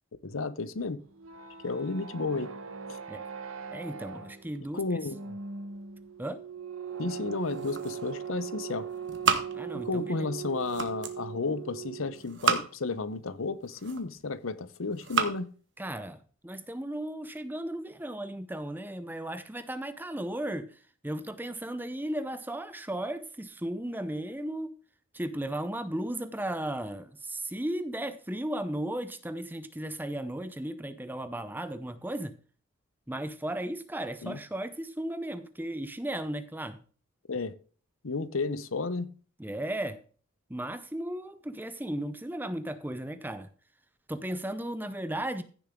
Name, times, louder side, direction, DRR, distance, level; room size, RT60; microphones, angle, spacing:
voice 1, 0.2-1.0 1.6-2.5 2.9-3.0 4.7-5.4 7.0-8.9 9.8-15.5 34.2-34.4 37.3-37.5 38.0-39.1, left 3 dB, 75° left, 0.8 m, -32 dB
sound 1, 1.0-12.2, right 7 dB, 80° right, 1.3 m, -40 dB
voice 2, 3.7-4.8 6.2-6.4 9.5-10.3 15.8-24.7 25.1-32.3 33.1-36.8 39.4-40.0 40.5-43.5 44.1-45.4, right 1 dB, 10° right, 0.7 m, -35 dB
sound 2, 7.3-8.3 8.6-10.1 10.4-11.2 12.1-13.0 13.5-14.3 14.9-15.4, right 5 dB, 55° right, 1.4 m, -32 dB
15.0 x 7.0 x 3.7 m
head